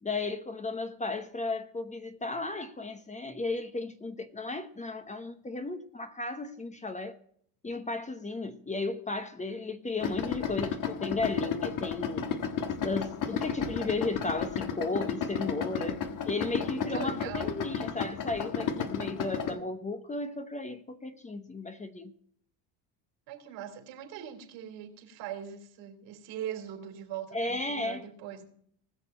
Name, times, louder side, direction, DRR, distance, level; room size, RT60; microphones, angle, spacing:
voice 1, 0.0-7.2 7.6-12.3 12.8-22.1 27.3-28.1, left 3 dB, 15° left, 1.0 m, -34 dB
Idling, 10.0-19.6, left 7 dB, 45° left, 1.4 m, -33 dB
voice 2, 16.9-17.6 23.3-28.4, right 10 dB, 75° right, 3.3 m, -41 dB
20.0 x 6.8 x 4.4 m
cardioid pair, 110°, 45 cm